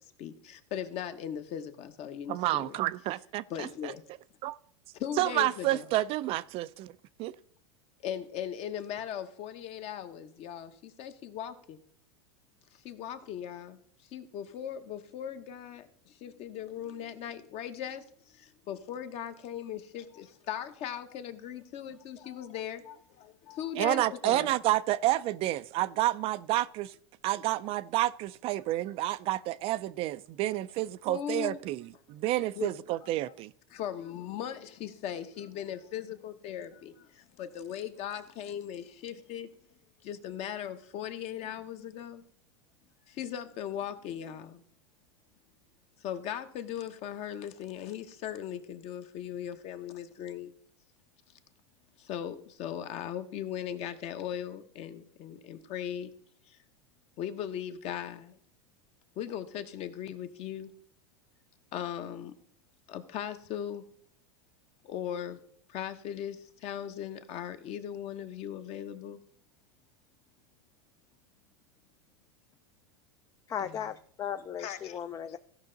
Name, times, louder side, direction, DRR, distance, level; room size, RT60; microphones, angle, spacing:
voice 1, 0.2-2.8 3.5-4.0 5.0-5.9 8.0-11.8 12.7-13.8 14.1-24.5 31.1-31.6 32.5-32.7 33.0-33.1 33.7-39.5 40.0-42.2 43.1-44.6 46.0-50.5 52.0-56.1 56.5-56.6 57.2-58.4 59.2-60.7 61.7-62.3 62.9-63.8 64.8-65.4 65.7-69.2 73.6-73.9 74.6-75.0, left 9 dB, 45° left, 1.1 m, -38 dB
voice 2, 2.3-3.9 4.4-4.6 5.2-6.9 7.2-7.3 23.8-26.9 27.2-33.5, right 16 dB, 40° right, 0.4 m, -29 dB
voice 3, 73.5-75.4, left 8 dB, 25° left, 0.4 m, -36 dB
15.5 x 5.5 x 3.9 m
hypercardioid pair, 115°, 15 cm